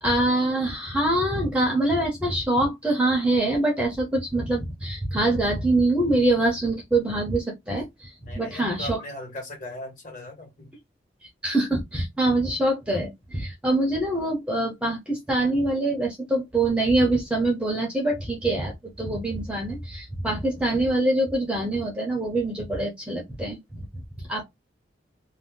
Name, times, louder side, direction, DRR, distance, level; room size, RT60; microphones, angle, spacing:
voice 1, 0.0-9.0 11.4-23.8 24.3-24.4, right 2 dB, 5° right, 0.7 m, -24 dB
voice 2, 8.3-10.7 24.3-24.4, left 1 dB, 45° left, 1.4 m, -38 dB
2.6 x 2.1 x 3.6 m
head